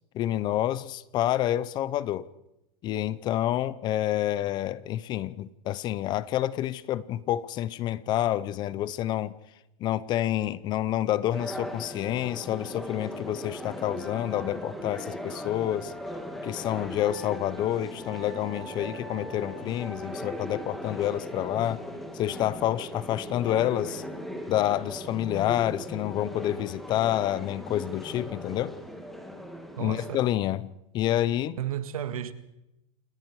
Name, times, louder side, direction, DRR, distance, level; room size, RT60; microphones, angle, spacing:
voice 1, 0.1-2.3 2.8-9.3 9.8-15.9 16.4-21.8 22.1-24.0 24.5-28.7 29.8-31.6, left 13 dB, 25° left, 0.7 m, -28 dB
sound 1, 11.3-30.2, equal, ahead, 2.5 m, -38 dB
voice 2, 29.8-30.3 31.6-32.3, right 10 dB, 80° right, 1.9 m, -33 dB
28.5 x 20.0 x 4.8 m
supercardioid pair, 155°, 18 cm